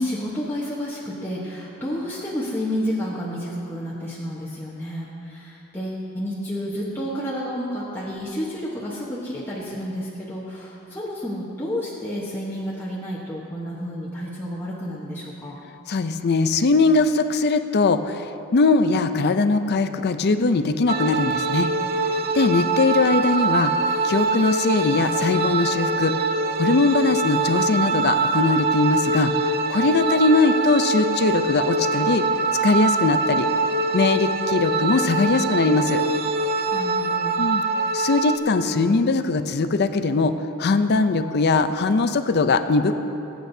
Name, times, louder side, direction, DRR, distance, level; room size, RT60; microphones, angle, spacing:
voice 1, 0.0-15.5 36.7-37.3, equal, 10° left, -7 dB, 1.1 m, -30 dB
voice 2, 15.9-18.3 18.5-21.7 22.3-23.7 24.0-29.3 29.7-32.2 32.6-33.5 33.9-36.0 37.4-37.6 37.9-43.0, left 3 dB, 45° left, 10 dB, 0.5 m, -21 dB
sound 1, 20.9-38.4, right 3 dB, 45° right, 0.5 m, -23 dB
21.0 x 8.6 x 2.7 m, 2.9 s
head